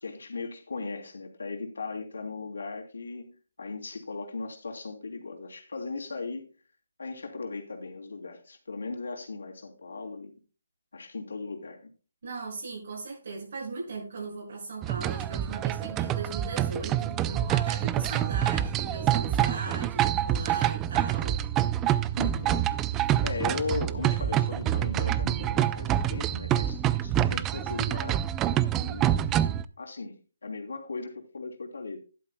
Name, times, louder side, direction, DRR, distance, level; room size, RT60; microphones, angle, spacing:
voice 1, 0.0-6.5 7.0-10.3 10.9-11.9 22.2-22.6 23.2-28.2 28.7-30.2 30.4-32.0, left 4 dB, 80° left, 2.8 m, -37 dB
voice 2, 12.2-21.4, right 3 dB, 60° right, 6.1 m, -38 dB
sound 1, 14.8-29.6, right 11 dB, 15° right, 0.3 m, -27 dB
12.0 x 11.5 x 2.2 m
hypercardioid pair, 165°, 0 cm